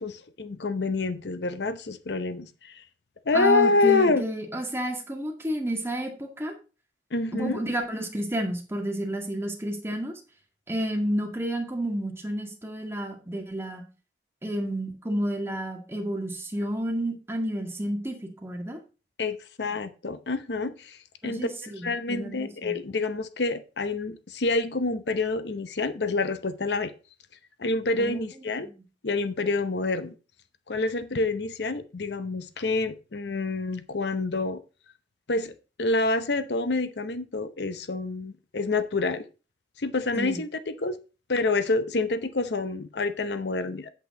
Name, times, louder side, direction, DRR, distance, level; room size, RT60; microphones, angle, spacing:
voice 1, 0.0-2.8 3.3-4.2 7.1-7.6 19.2-26.9 27.6-28.7 29.0-30.1 30.7-34.6 35.3-35.5 35.8-39.2 39.8-41.0 41.3-43.9, left 3 dB, 70° left, 0.8 m, -27 dB
voice 2, 3.3-6.5 7.3-10.1 10.7-13.8 14.4-18.8 21.2-22.8 28.0-28.2 28.6-28.8 40.1-40.4, right 1 dB, 15° right, 2.0 m, -31 dB
8.4 x 8.2 x 3.8 m
head